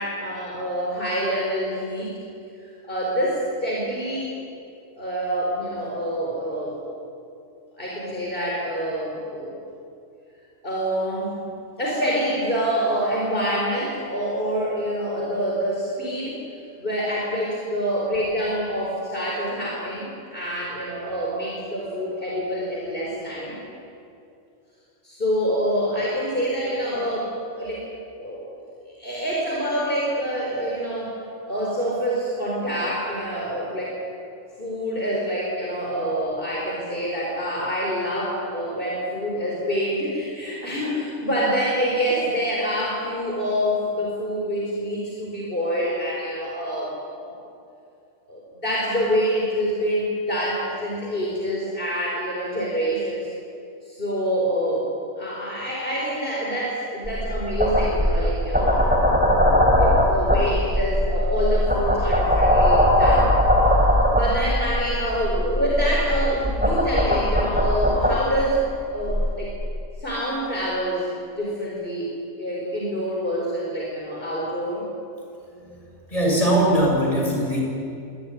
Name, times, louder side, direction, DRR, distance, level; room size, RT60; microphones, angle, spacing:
voice 1, 0.0-2.1 2.6-4.3 5.0-6.7 7.8-9.5 10.6-11.4 11.8-16.4 16.8-23.6 25.0-27.8 28.2-28.6 29.0-31.2 31.5-34.0 34.6-47.4 48.3-53.3 53.8-54.9 55.2-59.0 59.7-63.3 63.8-69.5 70.0-74.8, equal, 45° left, -4 dB, 4.9 m, -26 dB
sound 1, 57.0-68.2 69.0-69.4, equal, 5° right, 3.9 m, -20 dB
voice 2, 76.1-77.6, right 1 dB, 30° left, -2 dB, 6.8 m, -20 dB
25.0 x 18.0 x 9.9 m, 2.6 s
omnidirectional pair, 1.3 m